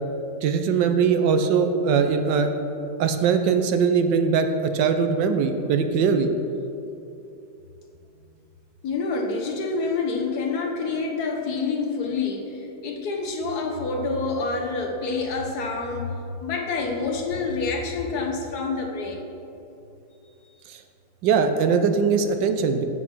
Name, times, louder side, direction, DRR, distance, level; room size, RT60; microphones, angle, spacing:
voice 1, 0.4-2.5 3.0-6.3 20.7-20.8 21.2-22.8, right 6 dB, 75° right, 7 dB, 1.3 m, -21 dB
voice 2, 8.8-12.4 12.8-16.1 16.4-19.3, left 4 dB, 60° left, 1 dB, 1.3 m, -27 dB
7.2 x 6.0 x 6.0 m, 2.8 s
omnidirectional pair, 2.0 m